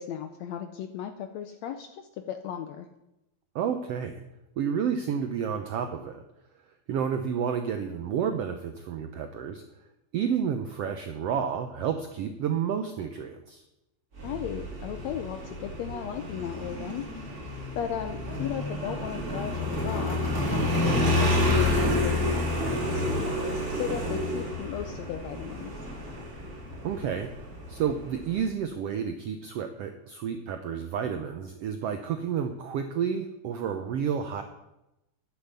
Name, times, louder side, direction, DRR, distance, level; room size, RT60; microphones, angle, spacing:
voice 1, 0.0-2.9 14.2-17.2 17.7-20.2 20.5-25.7, left 9 dB, 80° left, 7 dB, 1.6 m, -36 dB
voice 2, 3.5-4.1 4.6-6.2 6.9-9.6 10.1-13.6 26.8-27.3 27.7-34.4, right 7 dB, 85° right, 7 dB, 1.4 m, -30 dB
Motorcycle, 14.2-28.5, left 1 dB, 30° right, 2.8 m, -29 dB
11.5 x 8.4 x 6.8 m, 0.91 s
omnidirectional pair, 3.8 m